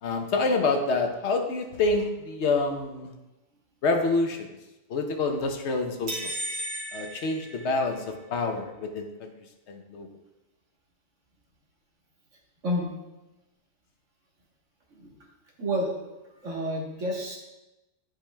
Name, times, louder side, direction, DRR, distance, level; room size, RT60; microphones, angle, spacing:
voice 1, 0.0-3.1 3.8-4.5 4.9-6.4 6.9-9.3 9.7-10.1, left 3 dB, 70° left, 5 dB, 1.0 m, -27 dB
sound 1, 6.1-8.2, right 1 dB, 60° right, 1.2 m, -35 dB
voice 2, 15.6-15.9 16.4-17.4, equal, 90° right, -1 dB, 1.7 m, -29 dB
10.0 x 5.1 x 2.2 m, 1.0 s
omnidirectional pair, 1.2 m